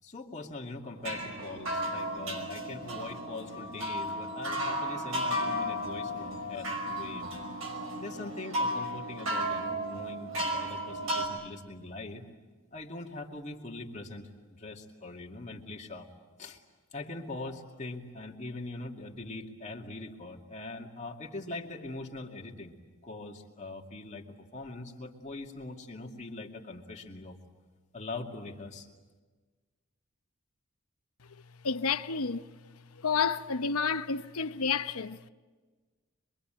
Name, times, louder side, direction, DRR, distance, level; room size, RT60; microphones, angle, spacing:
voice 1, 0.0-7.3 8.0-12.2 12.7-16.1 16.4-16.6 16.9-22.8 23.0-24.2 24.5-27.4 27.9-28.9, left 2 dB, 35° left, 2.4 m, -42 dB
sound 1, 0.9-11.3, equal, 70° right, 5.5 m, -34 dB
voice 2, 31.6-32.5 32.9-35.3, left 5 dB, 85° left, 0.9 m, -30 dB
26.0 x 23.0 x 9.0 m
head